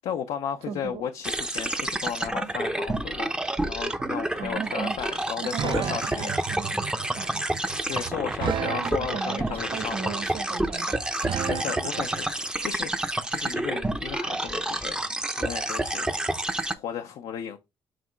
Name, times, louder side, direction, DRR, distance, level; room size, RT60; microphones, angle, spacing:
voice 1, 0.0-6.3 7.9-10.2 11.5-15.0 15.4-16.1 16.7-17.6, left 8 dB, 80° left, 0.7 m, -34 dB
voice 2, 0.7-1.1 4.4-5.0 5.4-6.8 7.1-7.5 8.7-11.0, right 6 dB, 75° right, 1.7 m, -37 dB
sound 1, 1.2-16.7, right 1 dB, 10° right, 0.7 m, -29 dB
sound 2, 4.0-12.2, right 9 dB, 55° right, 0.5 m, -34 dB
7.6 x 2.9 x 4.5 m
cardioid pair, 95°, 10 cm